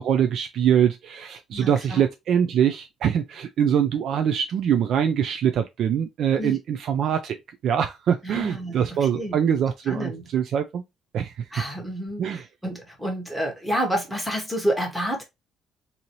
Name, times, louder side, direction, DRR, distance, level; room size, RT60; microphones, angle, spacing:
voice 1, 0.0-10.8 11.1-11.5 12.2-12.5, right 8 dB, 55° right, 0.3 m, -23 dB
voice 2, 1.5-2.0 6.4-6.6 8.2-8.9 9.1-9.4 9.9-10.2 11.5-15.2, equal, ahead, 1.1 m, -29 dB
4.0 x 2.8 x 2.9 m
cardioid pair, 175°, 0 cm